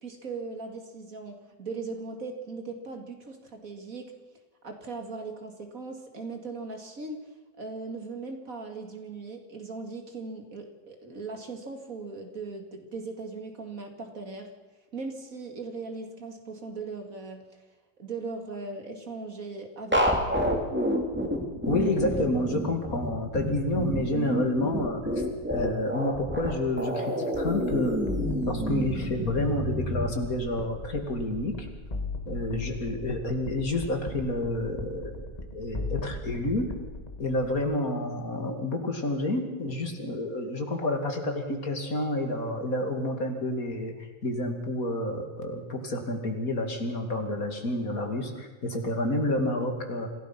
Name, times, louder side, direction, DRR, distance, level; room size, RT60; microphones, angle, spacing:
voice 1, 0.0-4.1 4.6-7.2 7.6-14.5 14.9-17.4 18.0-20.3, right 3 dB, 45° right, 4 dB, 2.7 m, -39 dB
sound 1, 19.9-30.1, equal, 5° right, 2.8 m, -29 dB
voice 2, 21.7-28.1 28.5-31.7 32.3-35.3 35.5-36.7 37.2-50.1, left 1 dB, 50° left, 4 dB, 2.8 m, -29 dB
sound 2, 27.3-37.8, left 2 dB, 20° left, 1.8 m, -38 dB
26.5 x 16.5 x 6.0 m, 1.2 s
omnidirectional pair, 2.0 m